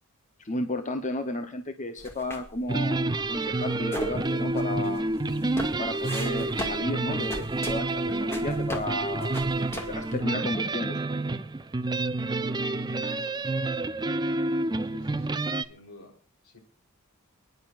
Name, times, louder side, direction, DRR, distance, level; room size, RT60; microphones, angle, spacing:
voice 1, 0.4-5.0 5.8-11.1, left 2 dB, 35° left, 6 dB, 0.9 m, -33 dB
sound 1, 2.0-10.2, equal, 10° left, 2.0 m, -38 dB
sound 2, 2.7-15.6, right 2 dB, 20° right, 0.6 m, -29 dB
voice 2, 12.9-13.2 14.9-16.1 16.4-16.6, left 2 dB, 70° left, 1 dB, 4.2 m, -52 dB
28.0 x 10.5 x 2.5 m, 0.37 s
head